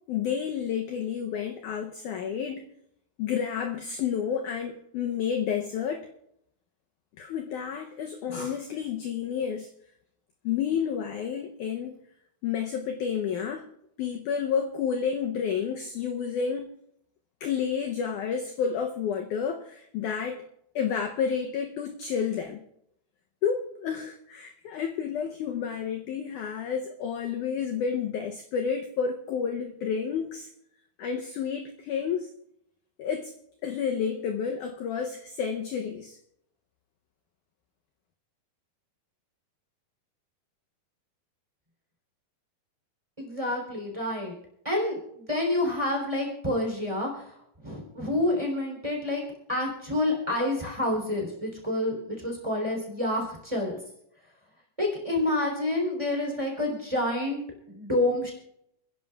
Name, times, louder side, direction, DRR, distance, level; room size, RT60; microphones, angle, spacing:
voice 1, 0.1-2.7 3.2-6.1 7.2-9.7 10.4-12.0 12.4-13.7 14.0-16.7 17.4-20.4 20.8-22.7 23.4-30.5 31.0-32.3 33.0-33.3 33.6-36.2, left 7 dB, 75° left, 4 dB, 1.9 m, -30 dB
voice 2, 43.2-44.3 44.6-47.3 47.6-49.2 49.5-53.8 54.8-57.4 57.7-58.3, left 1 dB, 10° right, 0 dB, 2.9 m, -28 dB
29.5 x 10.5 x 2.4 m, 0.76 s
omnidirectional pair, 4.3 m